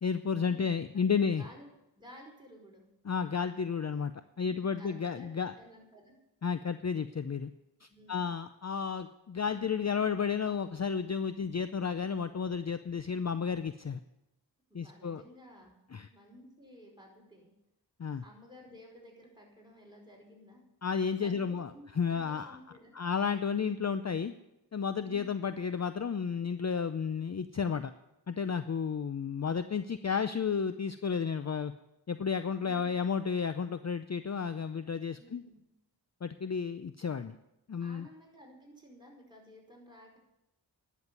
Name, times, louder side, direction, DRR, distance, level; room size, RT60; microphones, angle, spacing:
voice 1, 0.0-1.4 3.1-4.1 4.4-5.5 6.4-7.5 7.8-14.0 14.7-15.2 15.9-16.1 18.0-18.2 20.8-21.7 22.0-22.6 22.9-24.3 24.7-27.9 28.3-31.7 32.1-35.4 36.2-37.4 37.7-38.1, left 6 dB, 40° left, 11 dB, 0.5 m, -32 dB
voice 2, 0.9-1.7 1.9-2.9 4.3-6.2 7.9-8.3 14.7-15.7 16.1-17.5 18.2-20.6 21.2-23.0 25.0-25.4 35.1-35.6 37.8-40.2, equal, 10° right, -2 dB, 5.0 m, -54 dB
10.5 x 7.3 x 9.6 m, 0.88 s
wide cardioid pair, 50°, 42 cm